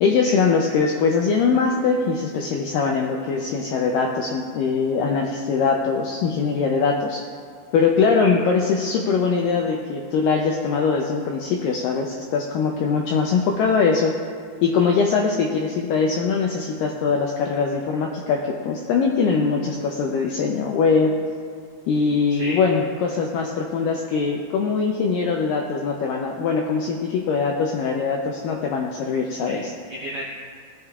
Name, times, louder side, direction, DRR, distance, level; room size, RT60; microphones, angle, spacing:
voice 1, 0.0-7.2 7.7-14.1 14.6-21.1 21.9-29.7, left 5 dB, 85° left, 1 dB, 1.9 m, -22 dB
voice 2, 22.3-22.6 29.4-30.3, equal, 80° right, -4 dB, 1.6 m, -34 dB
17.0 x 7.3 x 2.4 m, 2.2 s
omnidirectional pair, 4.6 m